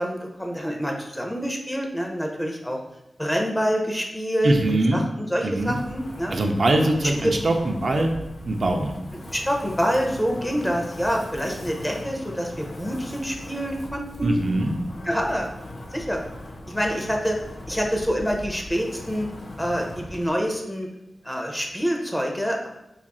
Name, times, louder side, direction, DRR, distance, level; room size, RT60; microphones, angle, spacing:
voice 1, 0.0-2.8 3.2-6.3 9.3-14.4 15.1-15.5 15.9-16.2 16.7-17.4 17.7-19.3 19.6-20.9 21.2-22.7, equal, 10° left, 1 dB, 0.6 m, -26 dB
voice 2, 4.4-5.0 5.4-5.8 6.3-8.1 8.4-8.9 14.2-14.8, right 2 dB, 60° right, 3 dB, 0.4 m, -22 dB
Wind, 5.6-20.3, left 1 dB, 75° left, 0.6 m, -39 dB
2.8 x 2.4 x 4.0 m, 0.88 s
wide cardioid pair, 70°, 0 cm